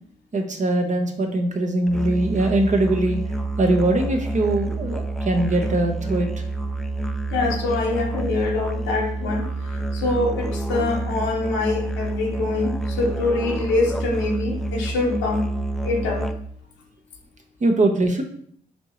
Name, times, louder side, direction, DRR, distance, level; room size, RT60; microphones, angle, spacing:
voice 1, 0.3-3.2 3.6-6.3 17.6-18.2, right 2 dB, 40° right, 4 dB, 0.9 m, -21 dB
Musical instrument, 1.9-16.6, right 2 dB, ahead, 0.4 m, -28 dB
voice 2, 7.3-15.5 15.8-16.3, left 3 dB, 85° left, 0 dB, 0.9 m, -24 dB
4.4 x 2.8 x 3.0 m, 0.63 s
hypercardioid pair, 45°, 19 cm